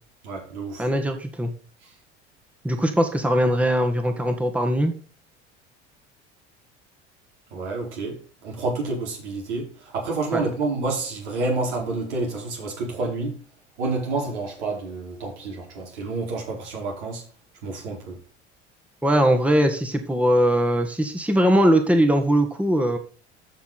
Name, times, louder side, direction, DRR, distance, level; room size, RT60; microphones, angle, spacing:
voice 1, 0.2-0.9 1.8-1.9 7.5-13.4 13.8-17.2 17.6-18.2, right 3 dB, 70° right, 4.9 m, -29 dB
voice 2, 0.8-1.5 2.6-4.9 10.3-10.4 19.0-23.0, equal, 5° right, 1.8 m, -20 dB
14.5 x 5.8 x 4.2 m
hypercardioid pair, 70°, 35 cm